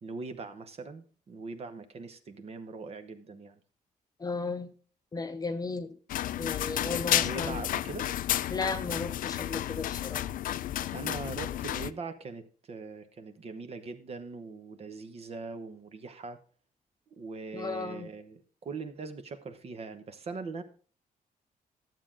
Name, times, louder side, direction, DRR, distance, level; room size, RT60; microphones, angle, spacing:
voice 1, 0.0-3.5 6.8-8.1 10.9-16.4 17.2-20.6, right 4 dB, 45° right, 1.1 m, -41 dB
voice 2, 4.2-4.7 5.1-5.9 6.4-7.6 8.5-10.2 17.5-18.1, left 4 dB, 25° left, 0.8 m, -35 dB
sound 1, 6.1-11.9, left 12 dB, 70° left, 0.4 m, -31 dB
12.0 x 7.5 x 3.8 m
cardioid pair, 145°, 15 cm